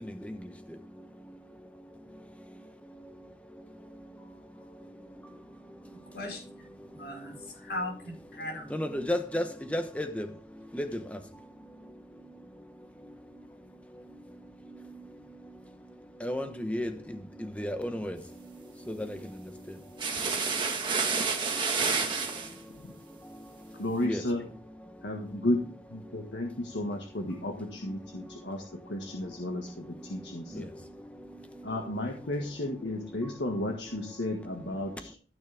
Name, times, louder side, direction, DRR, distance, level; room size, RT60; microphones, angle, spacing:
voice 1, 6.9-8.9, left 1 dB, 70° left, 5.0 m, -38 dB
voice 2, 8.7-9.4 9.7-10.1 10.7-10.9 16.2-16.9 17.6-18.1 24.1-24.2, left 1 dB, 10° left, 1.0 m, -30 dB
sound 1, 20.0-22.5, right 5 dB, 25° right, 1.6 m, -29 dB
voice 3, 23.8-24.5 25.0-30.7 31.6-35.1, left 1 dB, 90° left, 1.7 m, -33 dB
15.5 x 6.4 x 3.5 m
head